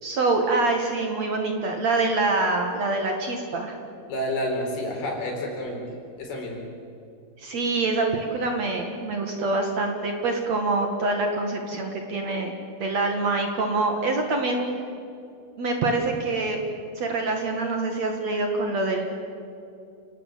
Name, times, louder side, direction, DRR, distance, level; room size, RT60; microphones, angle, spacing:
voice 1, 0.0-3.7 7.4-14.7 15.6-16.6 17.0-19.1, right 3 dB, 50° right, 3 dB, 2.5 m, -25 dB
voice 2, 4.1-5.8 6.2-6.6, left 1 dB, 70° left, 1 dB, 6.4 m, -29 dB
28.0 x 19.0 x 7.6 m, 2.6 s
omnidirectional pair, 4.6 m